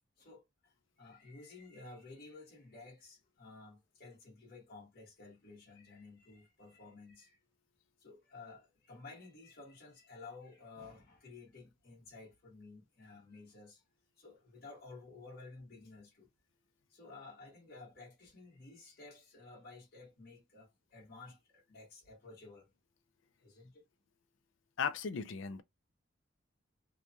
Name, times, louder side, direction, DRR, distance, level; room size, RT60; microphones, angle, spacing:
voice 1, 0.0-7.4 8.0-13.8 14.2-16.3 16.9-22.7 23.4-23.8, left 3 dB, 50° left, 1.1 m, -54 dB
voice 2, 24.8-25.6, left 6 dB, 75° left, 0.4 m, -36 dB
3.0 x 2.2 x 2.5 m
head